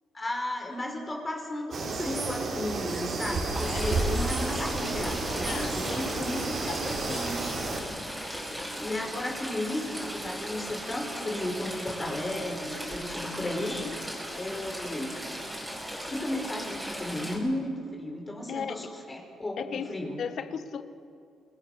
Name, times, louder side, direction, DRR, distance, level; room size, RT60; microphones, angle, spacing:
voice 1, 0.1-7.6 8.8-14.1 14.4-15.2 16.1-20.2, left 1 dB, 25° left, 2 dB, 5.1 m, -34 dB
sound 1, 1.7-7.8, right 3 dB, 55° right, 5.3 m, -31 dB
Stream / Trickle dribble, 3.5-17.4, equal, 5° right, 7.2 m, -37 dB
voice 2, 3.6-4.0 5.4-7.3 13.6-14.0 18.5-18.8 19.6-20.8, left 7 dB, 60° left, 11 dB, 1.4 m, -38 dB
27.0 x 21.0 x 6.7 m, 2.5 s
cardioid pair, 90°, 0 cm